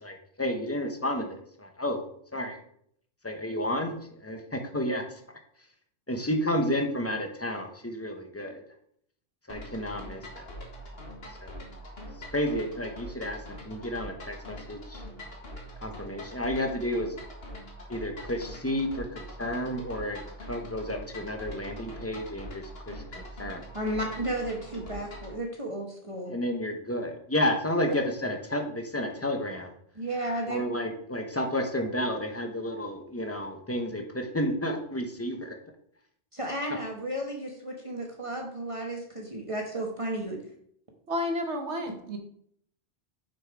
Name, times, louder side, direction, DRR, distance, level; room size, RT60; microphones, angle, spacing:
voice 1, 0.0-2.0 2.3-2.6 3.2-3.9 4.2-5.2 6.1-8.6 9.5-10.4 11.4-11.6 12.3-15.0 15.8-17.1 17.9-20.2 20.5-23.6 26.3-29.7 30.5-35.6, left 1 dB, 15° left, 4 dB, 1.0 m, -31 dB
sound 1, 9.5-25.4, equal, 65° left, 1.9 m, -43 dB
voice 2, 23.7-26.3 29.9-30.6 36.3-40.4, right 1 dB, 30° right, 0 dB, 1.2 m, -33 dB
voice 3, 41.1-42.2, left 1 dB, 90° right, 5 dB, 1.5 m, -31 dB
6.5 x 5.9 x 4.7 m, 0.66 s
omnidirectional pair, 1.1 m